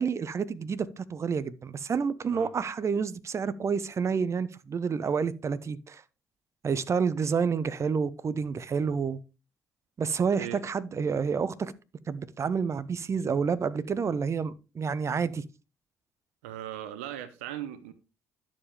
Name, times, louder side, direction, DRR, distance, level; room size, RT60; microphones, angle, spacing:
voice 1, 0.0-6.0 6.6-9.2 10.0-11.7 12.1-15.4, right 6 dB, 40° right, 1.0 m, -29 dB
voice 2, 16.4-17.9, right 11 dB, 80° right, 0.9 m, -38 dB
11.0 x 7.5 x 3.4 m
hypercardioid pair, 45°, 7 cm